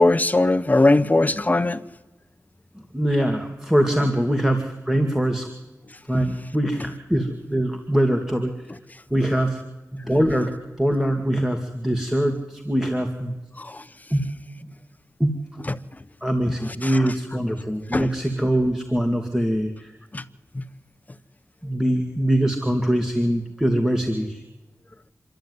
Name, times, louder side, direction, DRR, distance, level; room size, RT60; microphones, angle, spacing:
voice 1, 0.0-1.8 13.6-13.8 15.7-15.8 16.8-17.0 17.9-18.1 20.1-20.2 20.5-20.6, left 2 dB, 30° left, 1.0 m, -19 dB
voice 2, 2.9-5.5 6.1-8.7 9.1-9.6 9.9-13.3 14.1-14.3 15.2-15.3 16.2-19.9 21.6-24.4, right 1 dB, 10° right, 2.2 m, -23 dB
26.5 x 11.5 x 9.6 m
wide cardioid pair, 65°, 6 cm